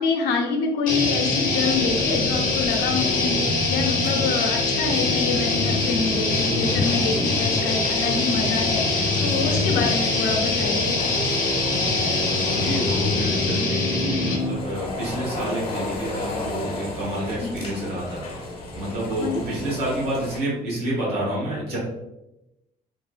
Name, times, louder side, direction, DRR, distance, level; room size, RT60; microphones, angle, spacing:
voice 1, 0.0-11.0 17.4-17.6 19.2-19.4, left 4 dB, 90° left, 2 dB, 0.6 m, -26 dB
sound 1, 0.9-14.6, left 3 dB, 50° left, 0.8 m, -23 dB
sound 2, 1.6-20.4, left 2 dB, 35° left, 1.2 m, -35 dB
voice 2, 12.3-18.2 18.7-21.8, right 1 dB, 70° right, -5 dB, 1.4 m, -29 dB
3.6 x 2.3 x 2.4 m, 0.91 s
cardioid pair, 110°, 17 cm